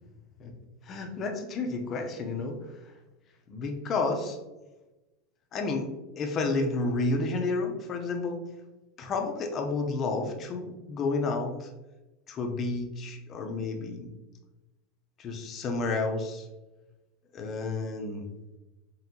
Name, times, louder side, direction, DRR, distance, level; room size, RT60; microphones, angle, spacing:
voice 1, 0.8-2.6 3.5-4.4 5.5-5.9 6.2-8.4 9.0-11.7 12.3-14.1 15.2-16.5 17.3-18.3, left 3 dB, 25° left, 3 dB, 0.6 m, -31 dB
4.2 x 3.6 x 2.7 m, 1.1 s
supercardioid pair, 165°, 0 cm